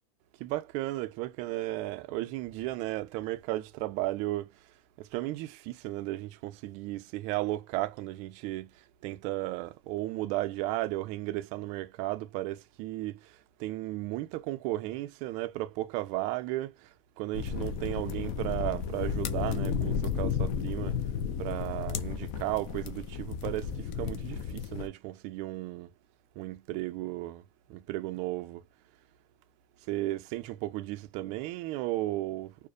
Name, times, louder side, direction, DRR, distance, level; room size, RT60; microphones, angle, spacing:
voice 1, 0.4-4.5 5.0-8.7 9.0-16.9 17.2-21.0 21.4-25.9 26.4-27.4 27.7-28.6 29.9-32.6, right 17 dB, 45° right, 0.4 m, -34 dB
sound 1, 17.3-24.9, left 7 dB, 45° left, 0.4 m, -33 dB
2.5 x 2.1 x 2.4 m
supercardioid pair, 145°, 17 cm